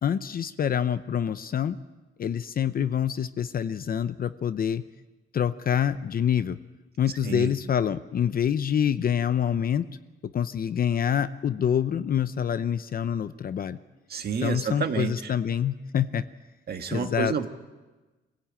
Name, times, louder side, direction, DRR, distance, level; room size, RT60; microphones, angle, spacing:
voice 1, 0.0-1.8 2.2-4.8 5.3-6.6 7.0-9.9 10.2-13.8 14.4-16.2 16.9-17.5, left 8 dB, 45° left, 12 dB, 0.7 m, -26 dB
voice 2, 14.1-15.3 16.7-17.5, right 6 dB, 50° right, 6 dB, 1.7 m, -29 dB
25.0 x 16.5 x 8.8 m, 1.2 s
cardioid pair, 150°, 21 cm